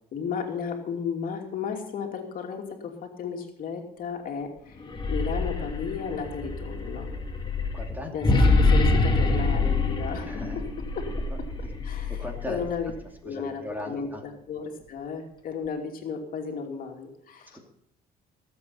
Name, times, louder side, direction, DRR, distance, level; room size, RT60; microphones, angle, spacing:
voice 1, 0.1-7.1 8.1-10.4 10.9-11.3 11.8-12.9 13.2-17.6, left 6 dB, 60° left, 2 dB, 2.7 m, -34 dB
sound 1, 4.8-12.9, left 3 dB, 25° left, 2.2 m, -25 dB
voice 2, 7.7-8.1 10.2-10.6 11.6-11.7 12.1-12.7 13.3-14.2 17.5-17.6, left 1 dB, 10° right, 3 dB, 2.6 m, -37 dB
18.5 x 8.0 x 5.6 m, 0.72 s
cardioid pair, 110°, 17 cm